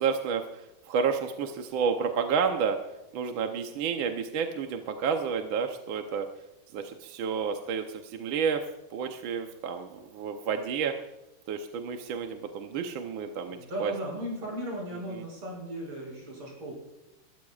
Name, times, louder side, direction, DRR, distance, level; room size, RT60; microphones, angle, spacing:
voice 1, 0.0-2.8 3.1-6.3 6.7-11.0 11.5-13.9 15.1-15.2, right 6 dB, 70° right, 5 dB, 1.6 m, -30 dB
voice 2, 13.5-16.7, right 1 dB, 85° right, -2 dB, 7.2 m, -36 dB
21.5 x 14.0 x 2.4 m, 0.98 s
omnidirectional pair, 2.4 m